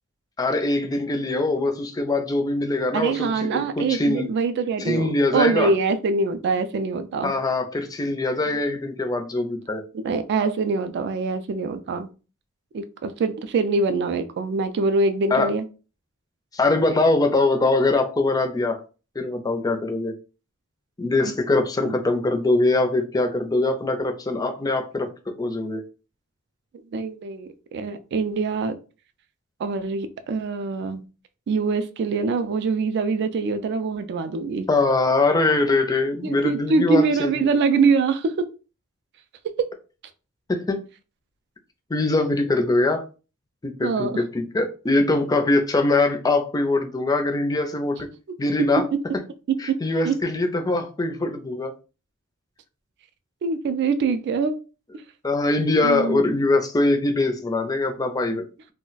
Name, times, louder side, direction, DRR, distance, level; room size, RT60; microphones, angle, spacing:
voice 1, 0.4-4.3 4.8-5.7 7.2-9.8 15.3-15.5 16.5-18.8 19.2-20.1 21.0-25.1 25.4-25.8 34.7-37.4 40.5-40.8 41.9-43.0 43.6-48.1 48.4-48.8 49.6-51.7 55.2-58.4, left 2 dB, 20° left, 0.4 m, -22 dB
voice 2, 2.9-7.3 9.9-12.1 12.7-15.6 21.2-21.3 21.8-21.9 26.9-28.8 29.6-31.0 31.5-34.7 36.2-38.5 39.4-39.7 43.8-44.2 49.5-49.8 50.0-50.2 53.4-54.6 55.8-56.2, right 4 dB, 55° right, 0.3 m, -24 dB
2.3 x 2.1 x 3.8 m
head